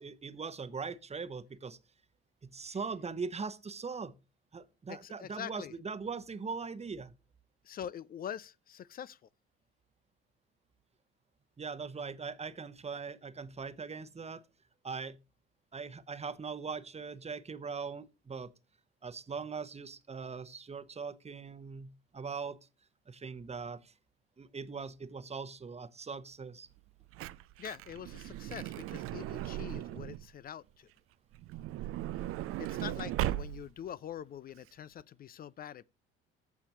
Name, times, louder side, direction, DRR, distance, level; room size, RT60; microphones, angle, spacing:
voice 1, 0.0-1.8 2.4-4.1 4.5-7.1 11.6-14.4 14.8-15.2 15.7-18.5 19.0-22.6 23.1-23.9 24.4-26.7, right 5 dB, 20° right, 1.1 m, -41 dB
voice 2, 4.9-5.7 7.7-9.2 27.6-30.9 32.6-35.8, left 9 dB, 30° left, 0.4 m, -44 dB
Truck / Door, 26.8-30.3 31.3-33.9 34.6-34.7 34.8-35.0, right 14 dB, 45° right, 0.5 m, -38 dB
14.5 x 5.7 x 3.0 m
figure-of-eight pair, 55°, 31 cm